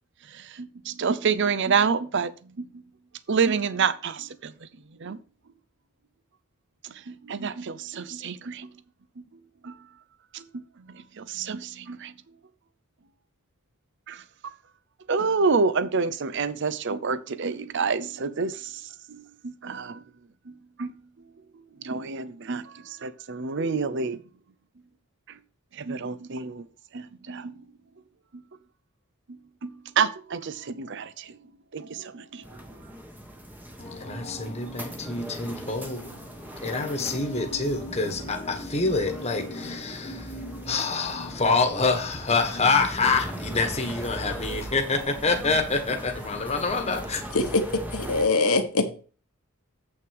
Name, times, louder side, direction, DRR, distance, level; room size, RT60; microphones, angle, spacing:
voice 1, 0.2-2.8 3.3-4.7 5.0-5.2 6.8-8.8 9.2-9.3 9.6-9.9 10.3-12.1 14.1-14.5 15.1-20.0 20.5-21.0 21.5-24.2 25.3-25.4 25.7-26.7 26.9-27.6 28.3-28.4 29.3-31.4 31.7-32.5, right 5 dB, 55° right, 0.6 m, -29 dB
sound 1, 32.4-48.3, equal, 10° right, 1.2 m, -39 dB
voice 2, 33.8-47.3, left 3 dB, 30° left, 1.4 m, -27 dB
voice 3, 47.9-48.9, left 3 dB, 75° left, 1.4 m, -23 dB
7.8 x 6.4 x 4.7 m
head